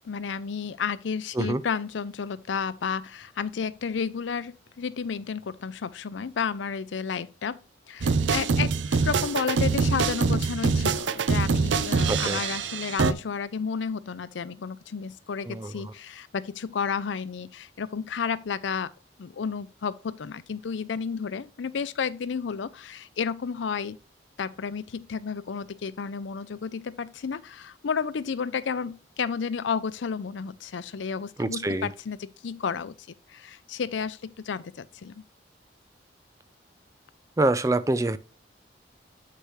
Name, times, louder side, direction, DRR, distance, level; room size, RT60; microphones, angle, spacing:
voice 1, 0.0-18.9 19.2-24.0 24.4-32.9 33.3-35.2, left 6 dB, 85° left, 0.5 m, -32 dB
sound 1, 8.0-13.1, right 4 dB, 85° right, 0.5 m, -24 dB
voice 2, 12.1-12.4 15.4-15.9 31.4-31.9 37.4-38.2, right 2 dB, 15° right, 0.4 m, -26 dB
7.9 x 6.5 x 3.1 m
head